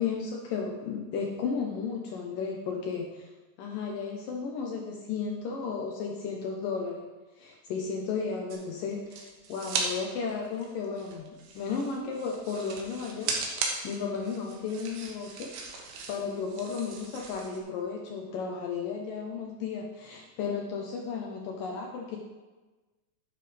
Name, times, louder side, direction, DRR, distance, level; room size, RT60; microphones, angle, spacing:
voice 1, 0.0-3.3 3.6-7.1 7.4-11.3 11.5-22.2, left 5 dB, 70° left, 0 dB, 2.2 m, -34 dB
sound 1, 8.5-9.9 10.2-17.6, right 4 dB, 70° right, 3.1 m, -37 dB
11.5 x 9.6 x 3.4 m, 1.2 s
omnidirectional pair, 4.7 m